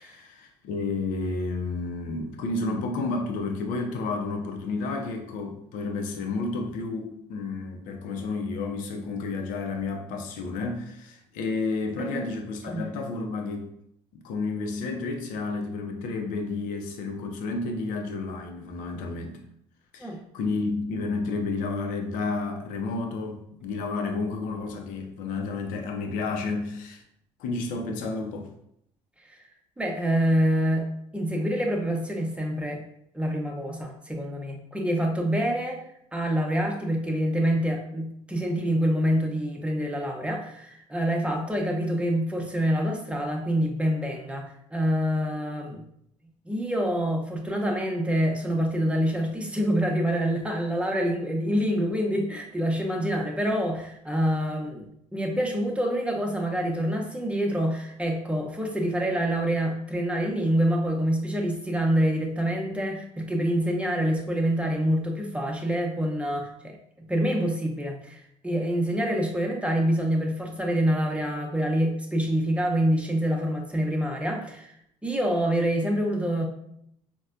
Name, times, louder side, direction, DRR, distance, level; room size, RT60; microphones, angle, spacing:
voice 1, 0.0-13.7 14.1-19.4 19.9-27.0 27.4-28.5, left 3 dB, 70° left, 4 dB, 0.6 m, -31 dB
voice 2, 29.8-30.9 31.1-32.8 33.1-35.9 36.1-45.8 46.5-54.9 55.1-74.7 75.0-76.4, equal, 10° right, 1 dB, 0.8 m, -26 dB
4.2 x 2.2 x 2.4 m, 0.73 s
hypercardioid pair, 65°, 14 cm